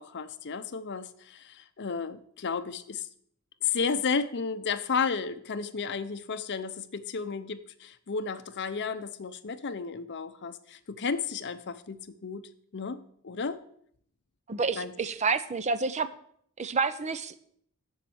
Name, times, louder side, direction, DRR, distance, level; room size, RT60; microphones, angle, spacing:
voice 1, 0.0-3.1 3.6-12.4 12.7-13.6 14.8-14.9, left 5 dB, 55° left, 11 dB, 0.7 m, -33 dB
voice 2, 14.5-16.1 16.6-17.4, right 4 dB, 30° right, 13 dB, 0.6 m, -29 dB
7.4 x 7.2 x 7.9 m, 0.66 s
head